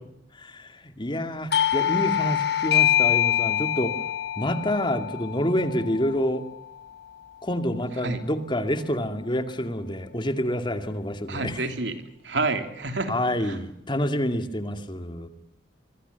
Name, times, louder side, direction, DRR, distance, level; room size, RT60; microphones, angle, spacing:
voice 1, 0.4-0.7 1.0-3.9 4.4-6.4 7.4-11.6 13.1-15.3, equal, 25° left, 8 dB, 2.3 m, -27 dB
Doorbell, 1.5-6.8, left 11 dB, 65° left, 1.1 m, -25 dB
voice 2, 11.3-13.6, right 3 dB, 80° right, 7 dB, 3.3 m, -29 dB
25.5 x 25.0 x 7.0 m, 0.74 s
head